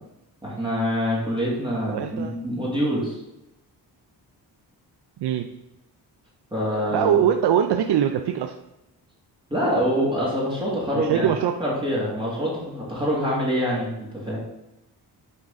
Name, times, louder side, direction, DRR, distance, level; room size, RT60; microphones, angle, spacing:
voice 1, 0.4-3.2 6.5-7.1 9.5-11.3 11.6-14.4, equal, 10° right, -6 dB, 2.0 m, -25 dB
voice 2, 1.9-2.4 5.2-5.5 6.9-8.5 10.9-11.5, right 9 dB, 70° right, 6 dB, 0.5 m, -22 dB
6.1 x 4.0 x 5.0 m, 0.93 s
wide cardioid pair, 125°, 42 cm